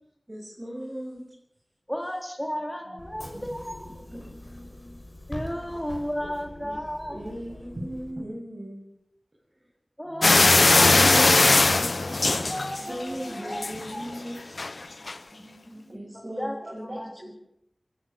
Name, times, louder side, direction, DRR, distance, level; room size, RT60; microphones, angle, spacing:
voice 1, 0.3-1.2 3.3-3.4 4.1-4.3 6.2-6.8 7.1-8.9 10.2-12.2 12.9-14.5 15.3-17.3, equal, 30° right, -2 dB, 7.3 m, -37 dB
voice 2, 1.9-3.9 5.3-7.2 10.0-11.6 12.5-14.1 16.4-17.3, equal, 5° left, 2 dB, 3.9 m, -34 dB
Bus / Engine, 3.0-8.1, left 1 dB, 30° left, 6.1 m, -43 dB
voice 3, 4.0-5.0 12.9-13.0 14.9-16.0, equal, 60° right, 3 dB, 5.1 m, -51 dB
sound 1, 10.2-13.1 13.5-13.9 14.6-14.7 15.1-15.2, left 3 dB, 70° left, 0.7 m, -19 dB
26.0 x 16.0 x 6.8 m, 0.80 s
wide cardioid pair, 65°, 0 cm